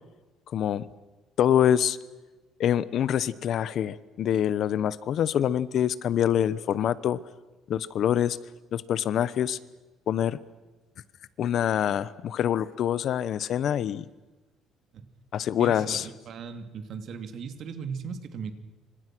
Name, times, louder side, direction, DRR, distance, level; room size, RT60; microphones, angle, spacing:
voice 1, 0.5-0.8 1.4-2.0 2.6-7.2 7.7-8.4 8.7-9.6 10.1-10.4 11.4-14.0 15.3-16.1, left 10 dB, 50° left, 17 dB, 1.0 m, -25 dB
voice 2, 15.6-18.5, right 6 dB, 50° right, 9 dB, 2.8 m, -37 dB
28.5 x 25.5 x 6.2 m, 1.2 s
cardioid pair, 145°, 0 cm